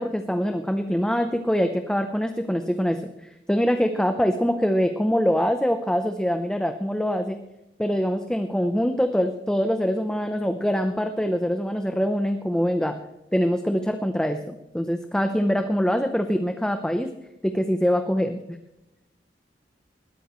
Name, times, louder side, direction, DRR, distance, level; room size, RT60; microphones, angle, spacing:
voice 1, 0.0-3.0 3.5-7.4 7.8-13.0 13.3-17.1 17.4-18.4, equal, 5° left, 6 dB, 0.7 m, -24 dB
20.5 x 13.0 x 3.1 m, 0.90 s
head